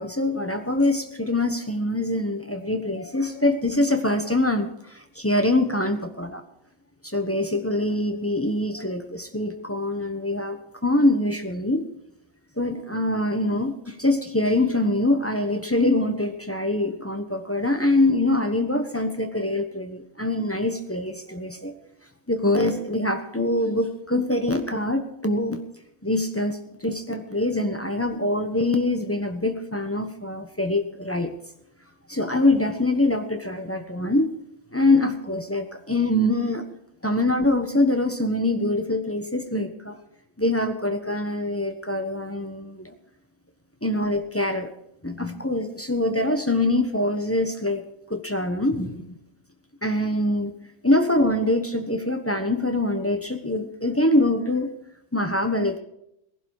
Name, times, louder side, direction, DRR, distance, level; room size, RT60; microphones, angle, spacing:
voice 1, 0.0-6.4 7.0-11.8 12.6-21.7 22.3-25.6 26.0-31.3 32.1-34.3 34.7-36.6 37.0-40.0 40.4-42.9 43.8-44.7 45.0-47.8 48.1-49.2 49.8-50.5 50.8-54.7 55.1-55.8, left 1 dB, 10° left, 5 dB, 0.7 m, -24 dB
18.5 x 11.5 x 4.8 m, 0.80 s
omnidirectional pair, 2.2 m